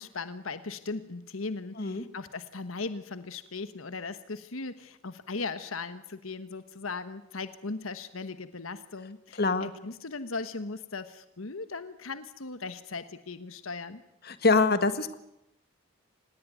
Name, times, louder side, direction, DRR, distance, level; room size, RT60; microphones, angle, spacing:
voice 1, 0.0-14.0, left 3 dB, 80° left, 11 dB, 1.2 m, -38 dB
voice 2, 9.4-9.7 14.3-15.2, left 3 dB, 50° left, 11 dB, 1.8 m, -24 dB
26.5 x 20.0 x 9.5 m, 0.83 s
head